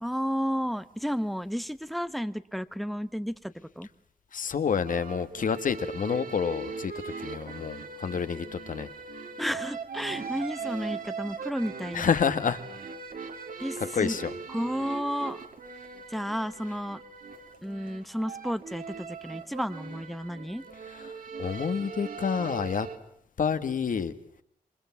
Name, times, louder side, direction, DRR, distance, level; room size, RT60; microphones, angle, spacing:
voice 1, 0.0-3.9 9.4-12.1 13.6-14.2 14.5-15.4 16.1-17.0 17.6-20.6, equal, ahead, 12 dB, 1.1 m, -32 dB
voice 2, 4.3-8.9 11.9-12.6 13.9-14.3 21.0-21.1 21.4-22.9 23.4-24.1, left 6 dB, 65° left, 10 dB, 1.8 m, -28 dB
sound 1, 4.8-23.0, right 5 dB, 65° right, 3.6 m, -40 dB
28.0 x 25.0 x 7.2 m, 0.69 s
wide cardioid pair, 155°, 15 cm